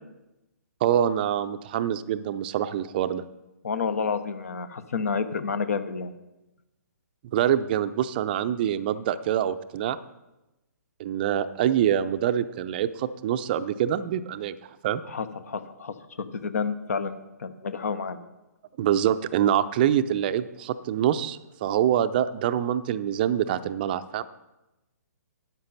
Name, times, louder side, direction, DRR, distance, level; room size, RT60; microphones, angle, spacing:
voice 1, 0.8-3.2 7.3-10.0 11.0-14.6 14.8-15.0 18.8-24.2, right 10 dB, 30° right, 12 dB, 0.5 m, -25 dB
voice 2, 3.6-6.1 15.1-15.9 16.3-18.2, left 5 dB, 55° left, 12 dB, 0.9 m, -29 dB
13.0 x 9.5 x 4.1 m, 0.99 s
figure-of-eight pair, 130°, 9 cm